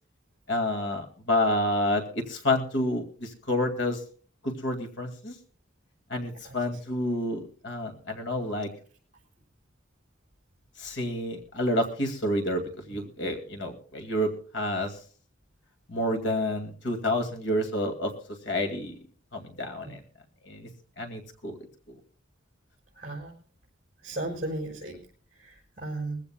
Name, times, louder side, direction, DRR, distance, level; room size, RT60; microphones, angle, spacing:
voice 1, 0.5-4.0 4.4-5.3 6.1-8.7 10.8-15.0 15.9-18.1 18.5-19.0 19.3-20.0 20.4-20.7 21.0-21.6, left 1 dB, 70° left, 4 dB, 2.2 m, -29 dB
voice 2, 22.9-23.3 24.0-25.0 25.4-26.2, right 2 dB, 40° right, -2 dB, 5.0 m, -35 dB
22.5 x 15.0 x 2.2 m, 0.42 s
head